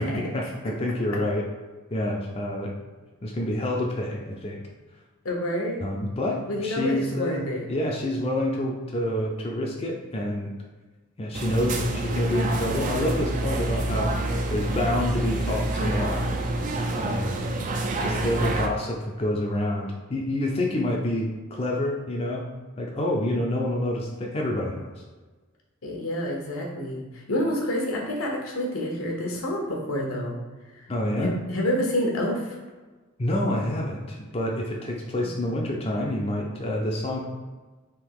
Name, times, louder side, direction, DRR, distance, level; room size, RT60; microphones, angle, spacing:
voice 1, 0.0-1.5 1.9-2.7 3.2-4.6 5.8-7.4 7.7-10.5 11.2-16.3 17.0-17.4 18.0-22.5 22.8-24.9 30.9-31.3 33.2-37.2, left 1 dB, 30° left, -1 dB, 0.5 m, -28 dB
voice 2, 5.2-5.8 6.5-7.6 25.8-30.4 30.8-30.9 31.2-32.6, left 1 dB, 80° left, -1 dB, 1.0 m, -28 dB
sound 1, 11.3-18.7, right 1 dB, 40° right, 0.4 m, -27 dB
3.6 x 2.9 x 4.6 m, 1.3 s
head